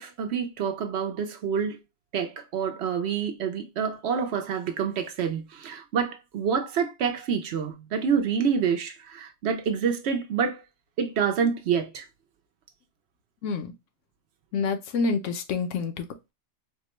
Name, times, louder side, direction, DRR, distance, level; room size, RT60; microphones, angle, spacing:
voice 1, 0.0-1.8 2.1-10.6 11.0-12.0, right 6 dB, 65° right, 0.8 m, -27 dB
voice 2, 13.4-13.7 14.5-16.1, left 4 dB, 80° left, 1.0 m, -27 dB
4.4 x 2.1 x 2.9 m
omnidirectional pair, 1.3 m